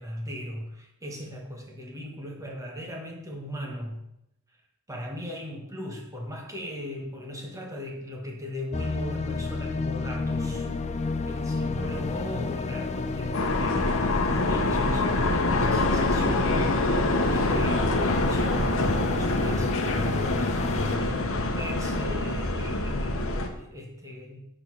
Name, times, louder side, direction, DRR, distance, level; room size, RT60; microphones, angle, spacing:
voice 1, 0.0-4.0 4.9-10.7 11.2-24.4, equal, 15° right, 0 dB, 1.5 m, -38 dB
sound 1, 8.7-21.0, left 3 dB, 30° left, 0.4 m, -31 dB
sound 2, 13.3-23.5, left 2 dB, 65° left, 1.0 m, -26 dB
8.6 x 3.9 x 6.2 m, 0.82 s
head